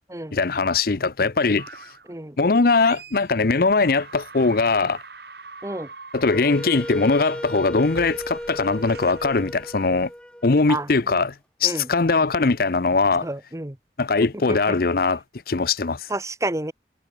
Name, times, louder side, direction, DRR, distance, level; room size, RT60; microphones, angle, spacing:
voice 1, 0.3-1.7 2.4-5.0 6.1-10.1 10.4-11.3 11.6-13.3 14.0-16.1, left 3 dB, 55° left, 0.7 m, -21 dB
sound 1, 1.6-2.1 2.7-3.4 3.7-10.1, right 4 dB, 60° right, 5.3 m, -44 dB
Wind instrument woodwind instrument, 6.3-11.2, equal, 5° left, 2.8 m, -36 dB
voice 2, 13.2-13.7 14.5-14.8 16.1-16.7, right 2 dB, 15° right, 1.1 m, -29 dB
head